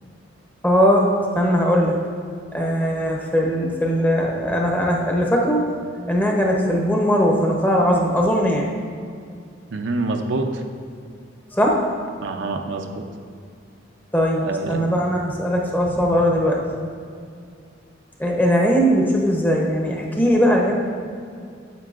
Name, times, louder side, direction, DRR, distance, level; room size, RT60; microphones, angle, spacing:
voice 1, 0.6-1.1 1.3-2.0 2.5-5.6 6.1-8.7 11.5-12.2 14.1-16.6 18.2-20.7, equal, 10° left, -1 dB, 0.8 m, -19 dB
voice 2, 9.7-10.6 12.2-13.0 14.4-14.9, right 3 dB, 70° right, 4 dB, 0.5 m, -26 dB
9.2 x 7.3 x 2.5 m, 2.3 s
head